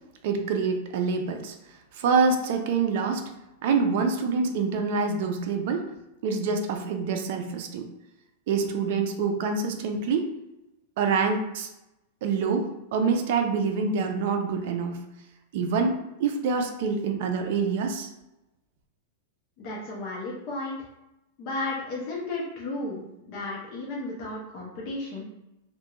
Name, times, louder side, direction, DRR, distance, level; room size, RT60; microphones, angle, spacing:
voice 1, 0.2-1.5 2.0-3.2 3.6-5.8 6.2-7.9 8.5-10.3 11.0-11.7 12.2-15.0 15.5-18.1, right 5 dB, 55° right, 5 dB, 0.4 m, -26 dB
voice 2, 19.6-20.8 21.4-23.0 23.3-25.2, left 2 dB, 40° left, -4 dB, 0.6 m, -33 dB
2.3 x 2.1 x 2.9 m, 0.90 s
supercardioid pair, 160°, 0 cm